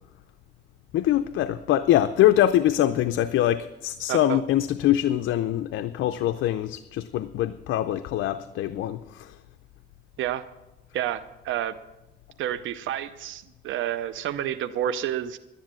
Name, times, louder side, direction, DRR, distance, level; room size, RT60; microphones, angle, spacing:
voice 1, 0.9-9.3, left 12 dB, 80° left, 9 dB, 0.6 m, -23 dB
voice 2, 4.1-4.4 10.2-10.4 10.9-11.7 12.4-15.4, right 11 dB, 75° right, 12 dB, 0.6 m, -29 dB
11.0 x 10.0 x 7.4 m, 0.98 s
cardioid pair, 90°, 20 cm